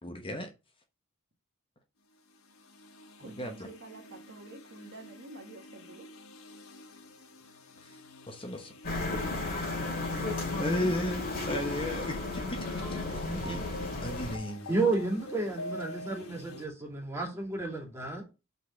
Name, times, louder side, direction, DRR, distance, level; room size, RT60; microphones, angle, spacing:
voice 1, 0.0-0.5 3.2-3.7 8.3-8.7 10.6-13.6 14.0-14.7, left 1 dB, 25° left, 1.0 m, -35 dB
sound 1, 2.3-16.6, left 1 dB, 85° left, 1.3 m, -47 dB
voice 2, 3.2-6.1, right 2 dB, 55° right, 1.4 m, -48 dB
sound 2, 8.8-14.4, left 2 dB, 45° left, 2.8 m, -34 dB
voice 3, 14.7-18.3, right 3 dB, 15° right, 2.5 m, -31 dB
5.4 x 4.3 x 6.2 m
head